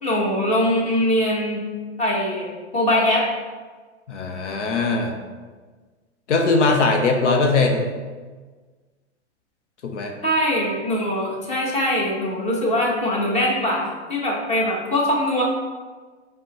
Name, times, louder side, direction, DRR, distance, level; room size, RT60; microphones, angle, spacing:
voice 1, 0.0-1.6 2.0-3.2 10.2-15.4, left 1 dB, 20° left, -3 dB, 1.1 m, -22 dB
voice 2, 4.1-5.1 6.3-7.9 9.8-10.1, left 3 dB, 80° left, 2 dB, 0.7 m, -20 dB
5.2 x 2.2 x 4.3 m, 1.4 s
hypercardioid pair, 110°, 35 cm